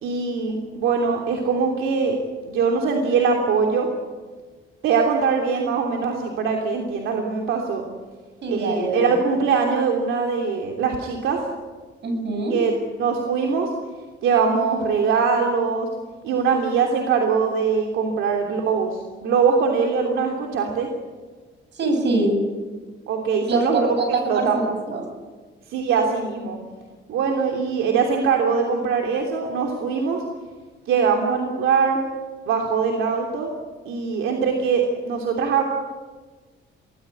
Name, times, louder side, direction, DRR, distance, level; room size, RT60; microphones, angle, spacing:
voice 1, 0.0-2.2 2.5-3.9 4.8-7.8 8.5-11.4 12.5-12.7 13.0-13.7 14.2-15.9 16.2-20.9 23.1-24.0 24.2-24.6 25.7-26.6 27.1-30.2 30.9-32.0 32.5-33.5 33.8-35.6, right 5 dB, 85° right, 1 dB, 3.0 m, -22 dB
voice 2, 8.4-9.1 12.0-12.6 21.7-22.4 23.5-25.0, right 2 dB, 60° right, 5 dB, 8.0 m, -23 dB
25.0 x 18.0 x 8.5 m, 1.4 s
cardioid pair, 90°, 20 cm